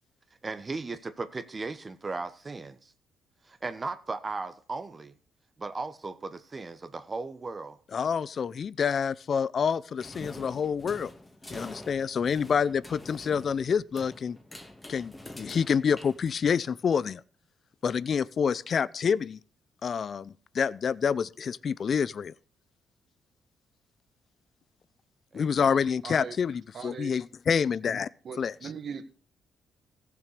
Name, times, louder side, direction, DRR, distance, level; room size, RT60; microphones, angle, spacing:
voice 1, 0.4-2.9 3.5-5.1 5.6-7.8 25.3-25.7, right 3 dB, 30° right, 1.2 m, -36 dB
voice 2, 7.9-11.1 11.5-14.4 14.9-17.2 17.8-19.4 19.8-22.3 25.3-28.1 28.4-28.5, left 6 dB, 50° left, 0.5 m, -27 dB
sound 1, 10.0-16.7, left 1 dB, 15° left, 2.1 m, -46 dB
voice 3, 25.6-26.4 26.7-27.2 28.2-29.0, right 6 dB, 55° right, 1.7 m, -40 dB
15.5 x 7.2 x 6.6 m
cardioid pair, 90°, 0 cm